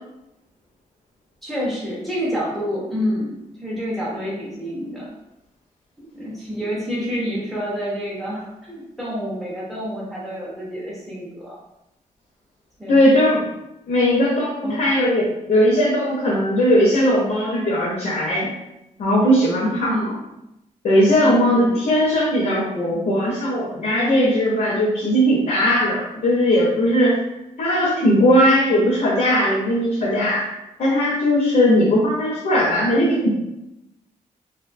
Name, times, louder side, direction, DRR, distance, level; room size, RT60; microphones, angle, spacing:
voice 1, 1.4-5.1 6.0-11.6 12.8-13.1 14.6-15.0 19.7-20.2 21.2-21.8, equal, ahead, -7 dB, 0.4 m, -28 dB
voice 2, 12.9-13.4 13.9-18.5 19.0-20.0 20.8-27.2 27.6-30.5 30.8-33.3, equal, 65° left, -5 dB, 0.6 m, -18 dB
2.5 x 2.1 x 2.5 m, 0.90 s
wide cardioid pair, 175°, 14 cm